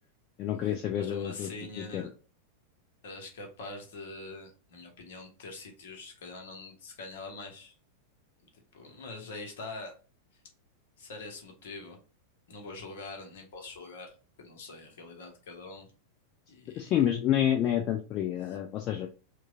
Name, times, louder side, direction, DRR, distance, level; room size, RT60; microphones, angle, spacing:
voice 1, 0.4-1.5 1.8-2.1 16.8-19.1, left 11 dB, 35° left, 3 dB, 0.5 m, -28 dB
voice 2, 1.0-2.1 3.0-7.7 8.5-9.9 11.0-12.0 12.5-15.9 16.5-16.9, left 3 dB, 55° left, 3 dB, 1.2 m, -44 dB
4.5 x 2.4 x 2.5 m, 0.36 s
figure-of-eight pair, 90°, 0 cm